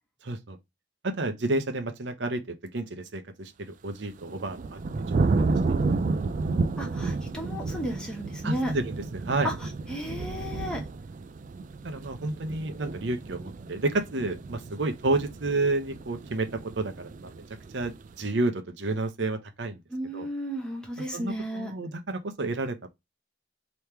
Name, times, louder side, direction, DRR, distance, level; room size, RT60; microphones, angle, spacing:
voice 1, 0.2-0.6 1.0-4.8 5.4-5.7 8.4-9.5 11.8-17.4 17.7-19.8 20.1-20.3 21.1-22.9, right 2 dB, 70° right, 0.8 m, -30 dB
sound 1, 4.0-18.2, right 3 dB, 45° right, 0.3 m, -31 dB
voice 2, 6.8-8.7 9.4-10.8 19.9-21.7, equal, 5° left, 1.4 m, -34 dB
3.4 x 3.1 x 4.4 m
head